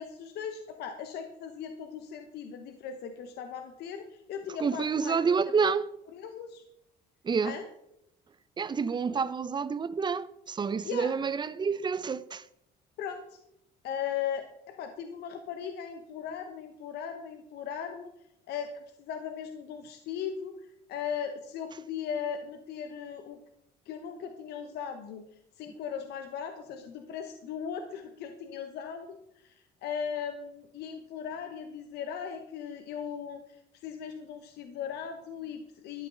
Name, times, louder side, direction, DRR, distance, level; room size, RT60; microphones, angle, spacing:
voice 1, 0.0-5.2 6.1-6.6 7.4-7.7 10.8-11.1 13.0-13.4 13.8-18.1 18.5-23.4 23.9-25.2 25.6-36.1, left 7 dB, 75° left, 1.1 m, -38 dB
voice 2, 4.6-5.8 7.2-7.6 8.6-12.4, right 5 dB, 25° right, 0.6 m, -28 dB
13.0 x 11.0 x 3.9 m
cardioid pair, 110°, 17 cm